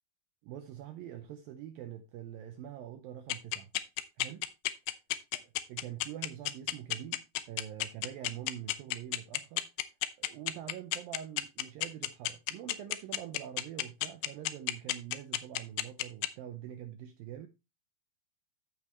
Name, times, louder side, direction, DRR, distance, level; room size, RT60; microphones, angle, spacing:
voice 1, 0.4-3.7 4.2-4.5 5.3-5.4 5.7-9.6 10.2-17.5, right 11 dB, 85° right, 2.0 m, -44 dB
sound 1, 3.3-16.3, left 17 dB, 80° left, 2.7 m, -31 dB
14.5 x 5.0 x 2.9 m
omnidirectional pair, 5.0 m